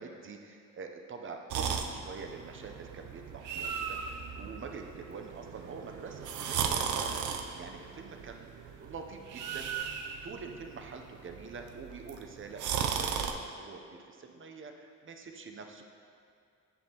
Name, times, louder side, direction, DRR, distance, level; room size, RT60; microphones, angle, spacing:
voice 1, 0.0-8.5 8.8-9.7 10.2-15.8, right 4 dB, 45° right, 4 dB, 0.7 m, -45 dB
sound 1, 1.5-13.3, right 7 dB, 85° right, 0.5 m, -36 dB
9.5 x 5.3 x 2.9 m, 2.3 s
cardioid pair, 95°, 30 cm